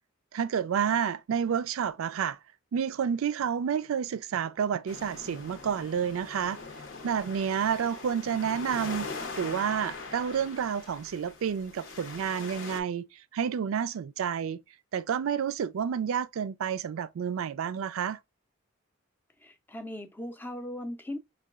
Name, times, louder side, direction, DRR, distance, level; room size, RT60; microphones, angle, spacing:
voice 1, 0.3-2.4 2.7-6.6 7.0-9.1 9.4-13.1 13.3-14.6 14.9-18.2, right 7 dB, 80° right, 0.4 m, -30 dB
sound 1, 4.9-12.8, left 4 dB, 60° left, 0.8 m, -42 dB
voice 2, 19.4-21.2, left 1 dB, 10° left, 0.5 m, -38 dB
5.4 x 2.2 x 2.3 m
head